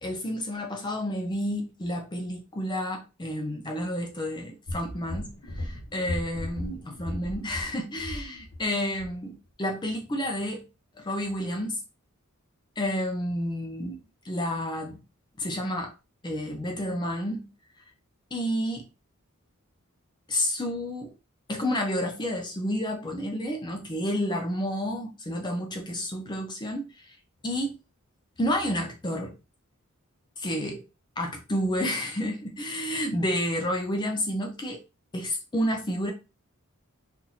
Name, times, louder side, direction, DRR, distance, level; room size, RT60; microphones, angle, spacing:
voice 1, 0.0-10.6 11.0-11.8 12.8-14.0 14.2-15.0 15.4-15.9 16.2-17.5 18.3-18.9 20.3-21.1 21.5-26.9 27.4-27.8 28.4-29.3 30.4-30.8 31.2-34.8 35.1-36.1, equal, 20° left, 0.5 m, -30 dB
sound 1, 4.7-8.7 9.0-9.1, left 1 dB, 70° left, 1.0 m, -36 dB
4.1 x 2.5 x 2.7 m
head